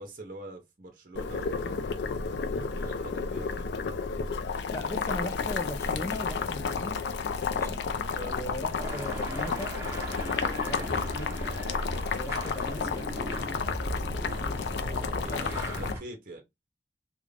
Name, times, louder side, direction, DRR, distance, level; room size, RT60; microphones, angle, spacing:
voice 1, 0.0-1.9 2.6-3.7 8.1-8.4 10.7-10.9 15.0-16.4, right 2 dB, 50° right, 0.6 m, -44 dB
Boiling, 1.1-15.9, left 5 dB, 85° left, 0.4 m, -32 dB
voice 2, 4.7-7.0 7.5-7.8 8.2-9.7 10.6-11.3 12.1-13.1 15.3-15.5, left 1 dB, 15° left, 0.4 m, -38 dB
sound 1, 8.8-16.0, equal, 15° right, 0.8 m, -37 dB
2.4 x 2.1 x 3.2 m
head